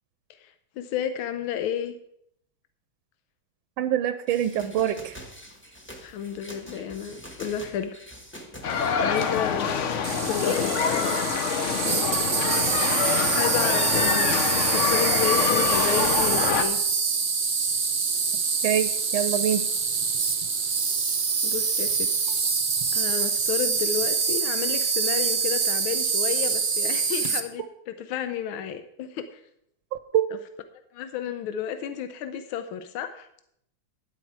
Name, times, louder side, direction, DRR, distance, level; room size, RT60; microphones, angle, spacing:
voice 1, 0.4-2.0 6.0-8.0 9.0-11.2 11.7-12.1 13.3-16.8 21.4-22.1 22.9-29.4 30.9-33.3, left 8 dB, 90° left, 9 dB, 1.5 m, -31 dB
voice 2, 3.8-5.1 18.6-19.6 30.1-30.2, right 10 dB, 85° right, 11 dB, 1.4 m, -24 dB
sound 1, 4.3-16.4, equal, 5° left, 1.0 m, -46 dB
sound 2, 8.6-16.6, left 7 dB, 60° left, 0.8 m, -26 dB
Insect, 10.0-27.4, right 5 dB, 55° right, 0.5 m, -25 dB
12.0 x 9.8 x 4.7 m, 0.75 s
omnidirectional pair, 2.2 m